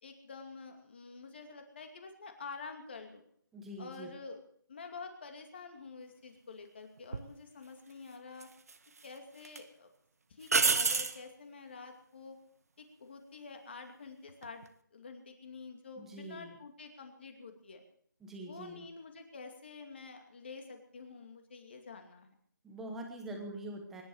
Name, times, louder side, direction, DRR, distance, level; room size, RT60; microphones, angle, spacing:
voice 1, 0.0-3.2 3.8-4.4 4.7-8.5 9.0-9.9 10.3-12.4 12.8-14.7 14.9-17.8 18.5-22.3, left 4 dB, 30° left, 5 dB, 2.5 m, -48 dB
voice 2, 3.5-4.1 16.0-16.5 18.2-18.8 22.6-24.0, right 1 dB, 5° right, 2 dB, 1.2 m, -44 dB
sound 1, 7.1-7.3 8.4-9.1 9.4-9.6 10.5-11.2 14.3-14.7, right 4 dB, 50° right, 1.1 m, -29 dB
24.0 x 11.0 x 4.9 m, 0.62 s
figure-of-eight pair, 170°, 11 cm